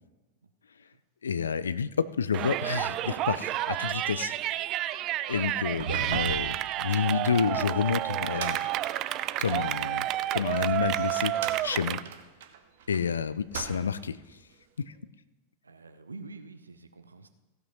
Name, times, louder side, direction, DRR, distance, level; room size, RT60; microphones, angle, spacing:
sound 1, 0.9-1.0 1.2-11.2 11.5-11.8 12.4-13.1, equal, 20° left, 3.1 m, -60 dB
voice 1, 1.2-4.4 5.3-8.6 9.4-10.1 10.3-11.3 11.6-12.0 12.9-14.2 14.8-14.9, left 6 dB, 70° left, 16 dB, 0.5 m, -29 dB
Yell, 2.3-12.0, right 14 dB, 35° right, 0.4 m, -30 dB
sound 2, 5.6-9.7 10.3-13.0 13.4-14.1, right 7 dB, 55° right, 1.1 m, -39 dB
voice 2, 15.6-17.3, right 3 dB, 75° right, 9 dB, 0.8 m, -47 dB
15.5 x 6.0 x 5.5 m, 1.2 s
figure-of-eight pair, 90°, 0 cm